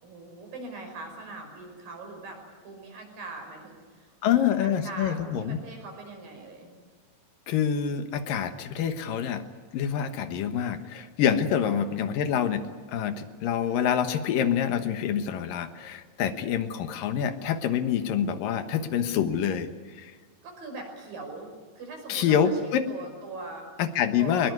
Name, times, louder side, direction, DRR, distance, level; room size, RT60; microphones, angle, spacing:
voice 1, 0.0-2.4 2.6-6.8 11.7-11.8 20.4-21.5 21.8-23.7 24.2-24.5, right 3 dB, 75° right, 3 dB, 7.4 m, -41 dB
voice 2, 4.2-5.6 7.5-9.4 9.7-19.7 20.0-20.1 22.1-22.9 23.8-24.5, left 8 dB, 75° left, 9 dB, 2.9 m, -26 dB
22.5 x 21.0 x 9.6 m, 1.5 s
omnidirectional pair, 4.1 m